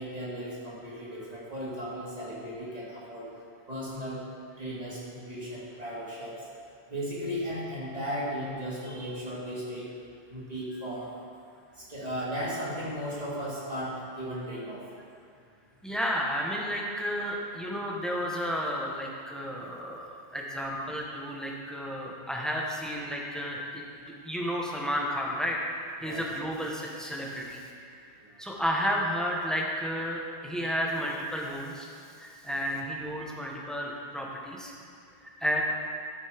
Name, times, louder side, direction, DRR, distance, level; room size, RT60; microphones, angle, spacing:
voice 1, 0.0-3.3 3.7-4.2 4.6-6.5 6.9-9.9 10.3-11.1 11.7-14.8 26.0-26.2 28.2-28.3, equal, 40° right, -8 dB, 2.5 m, -36 dB
voice 2, 15.8-23.9 24.2-25.7 26.0-27.6 28.0-31.9 32.2-34.7 35.4-35.6, equal, ahead, -2 dB, 1.1 m, -32 dB
12.5 x 5.3 x 5.1 m, 2.4 s
omnidirectional pair, 1.1 m